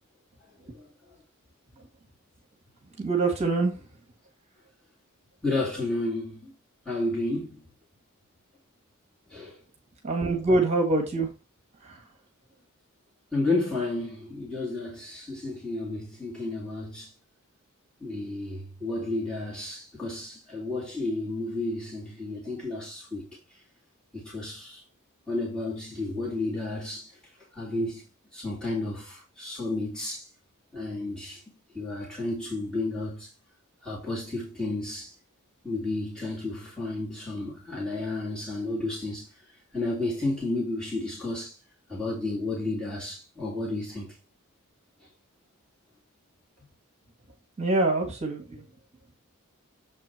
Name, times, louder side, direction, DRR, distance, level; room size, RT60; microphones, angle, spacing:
voice 1, 3.0-3.8 10.0-11.3 11.8-12.0 47.6-48.6, right 2 dB, 30° right, 1.7 m, -25 dB
voice 2, 5.4-6.5 6.9-7.6 9.3-9.6 13.3-17.1 18.0-23.3 24.1-24.8 25.3-27.2 27.5-28.1 28.3-30.3 30.7-31.4 31.7-33.3 33.8-35.2 35.6-39.3 39.7-41.6 41.9-44.1, left 2 dB, 5° left, 2.5 m, -32 dB
7.3 x 4.5 x 4.4 m
head